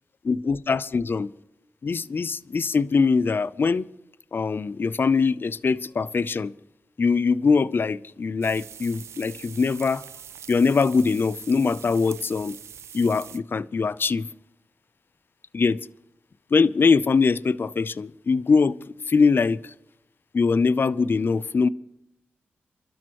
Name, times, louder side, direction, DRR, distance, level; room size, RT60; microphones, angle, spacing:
voice 1, 0.2-1.3 1.8-3.8 4.3-6.5 7.0-10.0 10.5-12.6 12.9-14.3 15.5-15.8 16.5-18.8 19.1-19.7 20.3-21.7, left 4 dB, 50° left, 0.6 m, -22 dB
sound 1, 8.4-13.4, right 8 dB, 85° right, 0.5 m, -43 dB
28.5 x 12.5 x 3.0 m
cardioid pair, 50°, 5 cm